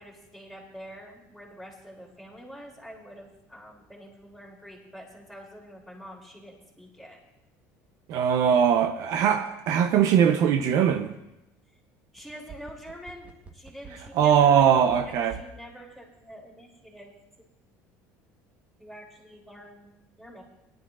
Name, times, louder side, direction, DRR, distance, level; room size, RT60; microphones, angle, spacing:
voice 1, 0.0-7.2 12.1-14.7 15.0-17.1 17.4-17.7 18.8-19.9 20.2-20.4, equal, ahead, -2 dB, 2.9 m, -46 dB
voice 2, 8.1-11.1 14.2-15.3, right 8 dB, 65° right, 8 dB, 0.7 m, -21 dB
sound 1, 12.2-15.6 15.9-16.0, right 7 dB, 20° right, 1.1 m, -45 dB
18.0 x 10.5 x 2.5 m, 0.90 s
cardioid pair, 120°, 7 cm